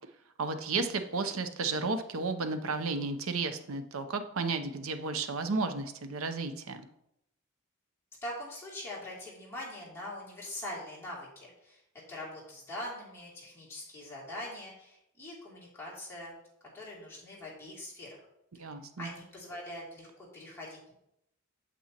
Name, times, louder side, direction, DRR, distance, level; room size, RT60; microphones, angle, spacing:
voice 1, 0.4-6.8 18.5-19.1, right 3 dB, 65° right, 9 dB, 0.7 m, -33 dB
voice 2, 8.2-11.8 12.1-16.4 16.7-18.2 19.0-20.9, left 1 dB, 10° left, -7 dB, 2.8 m, -43 dB
8.6 x 6.9 x 2.9 m, 0.80 s
head